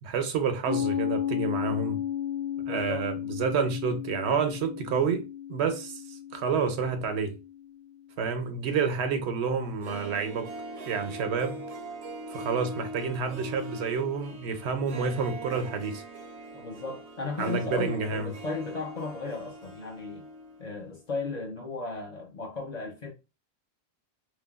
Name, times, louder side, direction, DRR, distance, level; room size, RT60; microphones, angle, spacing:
voice 1, 0.0-2.0 2.7-7.4 8.2-10.5 10.8-11.6 12.3-16.0 17.4-18.3, right 5 dB, 90° right, 0.9 m, -29 dB
Piano, 0.7-7.9, left 10 dB, 80° left, 1.2 m, -34 dB
voice 2, 2.7-3.1 16.5-20.3 20.6-23.1, left 3 dB, 50° left, 0.6 m, -35 dB
Harp, 9.6-20.7 20.9-21.0, right 1 dB, 50° right, 0.5 m, -41 dB
3.2 x 2.1 x 2.3 m
omnidirectional pair, 1.1 m